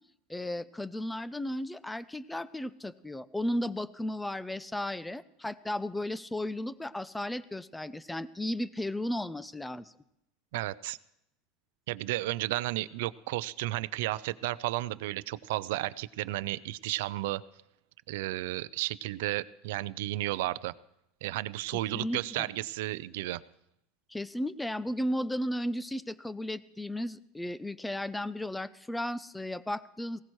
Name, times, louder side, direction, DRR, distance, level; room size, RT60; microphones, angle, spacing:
voice 1, 0.3-9.9 21.9-22.5 24.1-30.2, left 1 dB, 5° left, 17 dB, 0.5 m, -34 dB
voice 2, 10.5-11.0 11.9-17.4 18.1-20.7 21.2-23.4, right 17 dB, 75° right, 17 dB, 0.5 m, -33 dB
19.0 x 16.5 x 3.2 m, 0.81 s
supercardioid pair, 135°, 0 cm